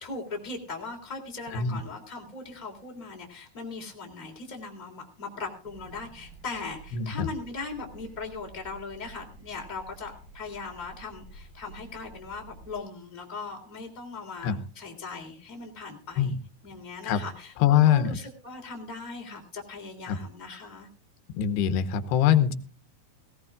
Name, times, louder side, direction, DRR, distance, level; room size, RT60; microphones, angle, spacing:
voice 1, 0.0-16.3 16.6-20.9, left 4 dB, 10° left, 1 dB, 2.5 m, -39 dB
sound 1, 5.6-12.8, right 3 dB, 80° right, 7.4 m, -50 dB
voice 2, 6.9-7.3 14.4-14.6 16.2-16.4 17.0-17.2 17.6-18.2 20.1-20.2 21.3-22.5, left 9 dB, 85° left, 10 dB, 3.1 m, -23 dB
18.0 x 17.5 x 2.4 m, 0.40 s
omnidirectional pair, 4.6 m